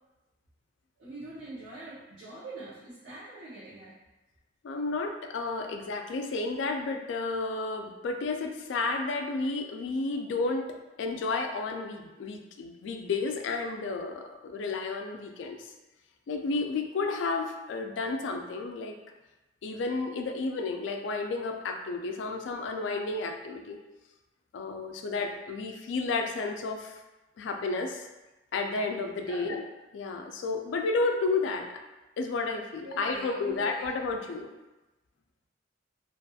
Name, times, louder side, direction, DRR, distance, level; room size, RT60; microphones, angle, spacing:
voice 1, 1.0-3.9 29.2-29.5 32.8-33.9, right 2 dB, 60° right, -11 dB, 0.7 m, -43 dB
voice 2, 4.6-10.7 11.0-15.7 16.3-18.9 19.6-23.8 24.5-27.0 27.4-28.1 28.5-29.7 29.9-31.7 32.2-34.5, left 3 dB, 70° left, 4 dB, 0.3 m, -32 dB
2.6 x 2.5 x 2.3 m, 1.1 s
head